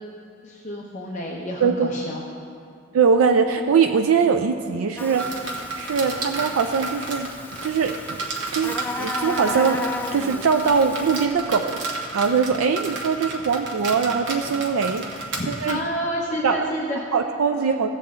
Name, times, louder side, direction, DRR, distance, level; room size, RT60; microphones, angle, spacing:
voice 1, 0.4-2.2 15.4-17.1 17.7-17.8, equal, 35° left, -3 dB, 0.8 m, -29 dB
voice 2, 1.6-1.9 2.9-5.4 5.7-7.3 7.6-8.0 8.5-9.8 10.1-15.8 16.4-16.7 17.1-17.9, right 5 dB, 85° right, 5 dB, 0.4 m, -22 dB
Buzz, 5.0-11.3, left 2 dB, 10° left, 0.3 m, -34 dB
sound 1, 5.2-15.7, right 3 dB, 65° right, 1.1 m, -32 dB
15.0 x 7.5 x 3.7 m, 2.3 s
head